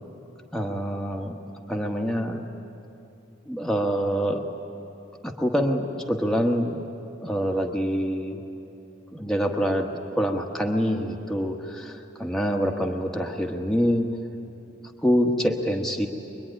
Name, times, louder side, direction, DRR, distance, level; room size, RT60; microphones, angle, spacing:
voice 1, 0.5-1.4 1.7-2.4 3.5-4.4 5.2-6.8 7.2-8.4 9.1-14.1 15.0-16.1, equal, 5° left, 1 dB, 1.3 m, -25 dB
24.5 x 22.5 x 10.0 m, 2.9 s
head